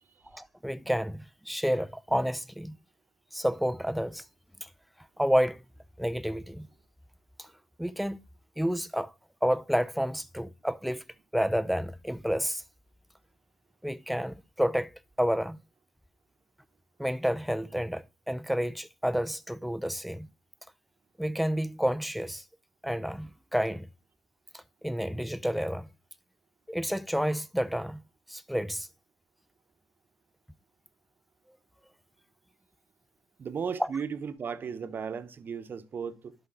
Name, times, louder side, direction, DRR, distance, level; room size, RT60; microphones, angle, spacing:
voice 1, 0.3-2.8 3.3-4.2 4.6-4.7 5.2-5.6 6.0-6.7 7.4-7.5 7.8-8.2 8.6-9.1 9.4-11.0 11.3-12.6 13.8-14.9 15.2-15.6 17.0-20.3 21.2-22.4 22.8-23.9 24.5-25.9 26.7-28.0 28.3-28.9 33.8-33.9, equal, ahead, 0.6 m, -30 dB
voice 2, 33.4-36.3, right 6 dB, 50° right, 1.0 m, -35 dB
11.5 x 5.6 x 3.7 m
hypercardioid pair, 50°, 4 cm